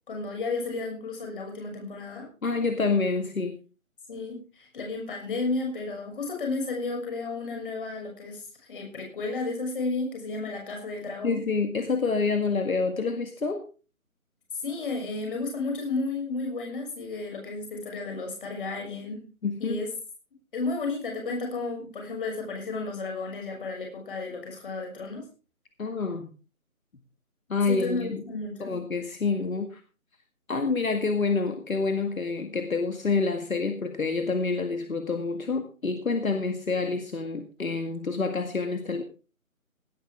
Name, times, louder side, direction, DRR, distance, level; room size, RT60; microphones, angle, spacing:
voice 1, 0.1-2.3 4.1-11.4 14.6-19.3 19.6-19.9 20.5-25.2 27.7-28.8, left 3 dB, 40° left, 2 dB, 6.4 m, -33 dB
voice 2, 2.4-3.6 11.2-13.6 19.4-19.9 25.8-26.3 27.5-28.2 28.6-29.8 30.5-39.0, left 4 dB, 75° left, 6 dB, 2.1 m, -27 dB
18.0 x 11.0 x 3.6 m, 0.35 s
figure-of-eight pair, 160°, 42 cm